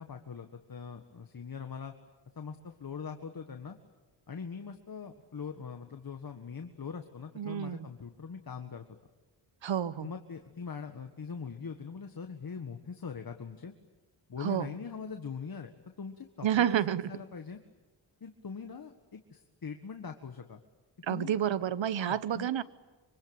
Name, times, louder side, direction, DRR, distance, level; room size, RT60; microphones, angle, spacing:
voice 1, 0.0-1.9 2.4-3.8 4.3-8.8 10.0-13.7 14.3-15.7 16.0-17.6 18.2-20.6 21.1-21.4 22.0-22.5, left 6 dB, 50° left, 5 dB, 1.8 m, -42 dB
voice 2, 7.4-7.9 9.6-10.1 14.4-14.8 16.4-17.1 21.0-22.6, right 10 dB, 75° right, 16 dB, 1.1 m, -30 dB
25.5 x 24.5 x 9.0 m, 1.2 s
cardioid pair, 80°, 46 cm